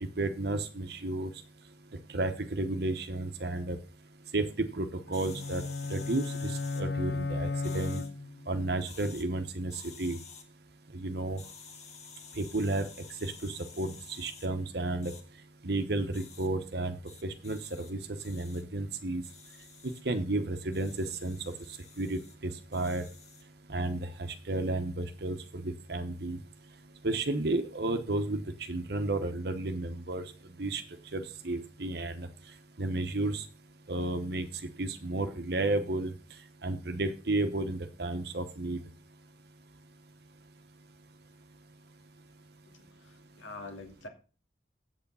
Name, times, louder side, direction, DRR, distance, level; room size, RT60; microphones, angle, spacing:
voice 1, 0.2-1.3 2.1-3.8 4.3-4.5 4.7-5.6 5.9-8.0 8.5-10.2 10.9-11.4 12.4-12.9 13.2-15.1 15.6-17.0 17.2-18.0 18.2-19.2 20.0-21.4 22.0-23.0 23.7-24.1 24.5-25.4 25.6-26.4 27.0-28.4 28.7-30.2 30.6-30.8 31.1-32.3 32.8-33.4 33.9-34.5 34.8-36.1 36.6-38.8, right 2 dB, 55° right, 8 dB, 0.9 m, -32 dB
sound 1, 5.1-8.6, left 3 dB, 55° left, 0.5 m, -35 dB
sound 2, 5.1-6.8 7.6-8.1 8.8-9.2 9.7-10.4 11.4-14.5 15.0-15.2 16.1-16.5 17.0-17.9 18.2-18.6 19.2-20.0 20.7-22.3 22.7-23.5, left 6 dB, 35° left, 1.6 m, -51 dB
voice 2, 42.7-44.1, left 3 dB, 80° left, 4 dB, 2.4 m, -46 dB
8.4 x 7.8 x 5.5 m, 0.35 s
head